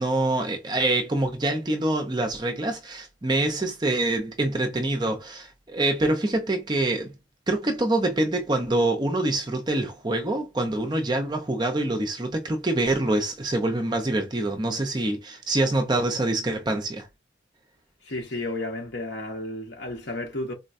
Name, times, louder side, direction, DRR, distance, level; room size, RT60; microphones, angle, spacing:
voice 1, 0.0-7.2 7.5-17.1, right 2 dB, 20° right, 0.5 m, -25 dB
voice 2, 18.0-20.5, left 2 dB, 60° left, 1.2 m, -32 dB
4.1 x 2.2 x 2.5 m
head